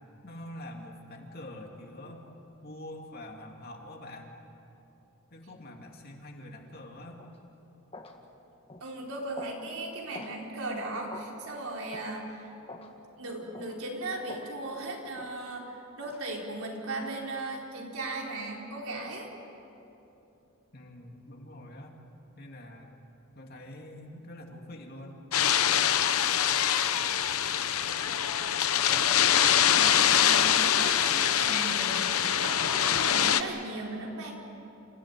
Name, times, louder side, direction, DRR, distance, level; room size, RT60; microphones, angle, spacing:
voice 1, 0.2-2.3 2.6-4.4 5.3-7.2 20.7-22.0 22.4-22.9 23.3-25.2, left 1 dB, 45° left, 1 dB, 2.7 m, -45 dB
sound 1, 7.2-7.4 7.9-8.2 8.7-8.9 9.4-9.6 10.1-10.4 11.1-11.3 11.9-12.1 12.7-12.9 13.5-13.8 14.3-14.5 15.1-15.3 16.0-16.2, left 2 dB, 25° left, 1.7 m, -45 dB
voice 2, 8.8-12.5 13.2-19.3 28.9-32.0 32.4-34.4, right 2 dB, 80° right, -1 dB, 4.4 m, -37 dB
sound 2, 25.3-33.4, left 9 dB, 85° left, 0.9 m, -24 dB
29.0 x 16.0 x 9.3 m, 2.9 s
head